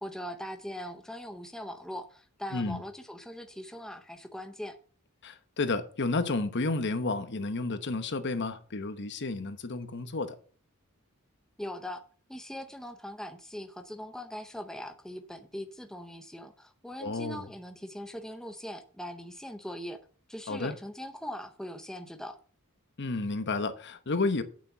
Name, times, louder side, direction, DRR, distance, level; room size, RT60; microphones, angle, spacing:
voice 1, 0.0-4.8 11.6-12.0 12.3-20.0 20.3-22.4, equal, 5° left, 0.6 m, -41 dB
voice 2, 5.2-10.4 17.0-17.5 20.5-20.7 23.0-24.4, left 3 dB, 55° left, 1.0 m, -31 dB
8.8 x 7.4 x 5.6 m
head